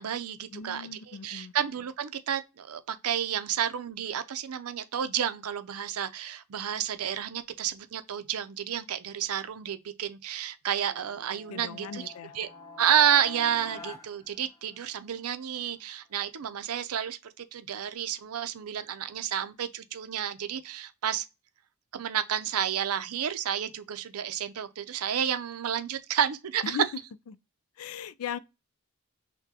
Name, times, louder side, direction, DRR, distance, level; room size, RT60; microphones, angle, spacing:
voice 1, 0.0-12.5 12.8-21.2 21.9-26.8, right 9 dB, 90° right, 0.5 m, -30 dB
voice 2, 0.5-1.5 11.5-12.3 26.6-26.9 27.3-27.4 27.8-28.4, left 8 dB, 80° left, 0.3 m, -38 dB
sound 1, 10.8-15.1, left 3 dB, 15° left, 0.6 m, -47 dB
5.9 x 2.2 x 2.8 m
head